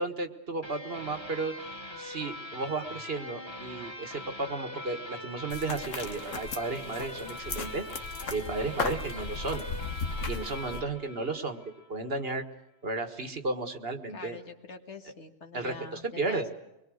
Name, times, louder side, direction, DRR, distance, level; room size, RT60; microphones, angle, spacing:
voice 1, 0.0-1.5 2.0-9.6 10.3-11.6 11.9-12.4 12.8-14.4 15.5-16.5, right 3 dB, 50° right, 7 dB, 1.8 m, -34 dB
sound 1, 0.6-11.9, left 1 dB, 20° left, 2.5 m, -42 dB
sound 2, 5.5-10.8, left 4 dB, 90° left, 1.7 m, -37 dB
voice 2, 14.1-16.5, left 4 dB, 65° left, 5 dB, 2.2 m, -44 dB
25.0 x 21.5 x 6.4 m, 0.93 s
omnidirectional pair, 1.3 m